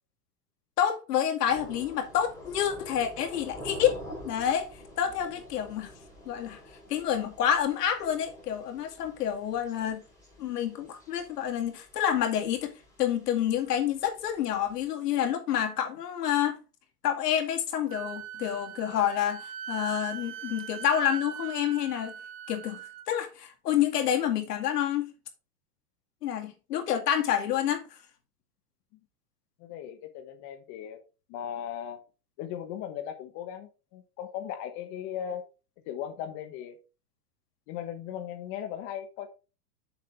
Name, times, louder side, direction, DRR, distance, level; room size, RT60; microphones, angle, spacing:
voice 1, 0.8-4.7 5.0-5.9 6.3-6.6 6.9-10.0 10.4-12.7 13.0-16.6 17.0-22.1 22.5-22.8 23.1-25.1 26.2-28.0, left 10 dB, 80° left, 2.3 m, -28 dB
Thunder / Rain, 1.5-14.9, equal, 5° left, 5.1 m, -48 dB
Wind instrument woodwind instrument, 17.9-23.1, right 9 dB, 20° right, 0.3 m, -40 dB
voice 2, 29.6-31.0 31.3-32.0 32.4-35.4 35.9-36.8 37.7-39.3, left 9 dB, 40° left, 1.2 m, -38 dB
7.5 x 7.2 x 3.4 m
supercardioid pair, 150°, 46 cm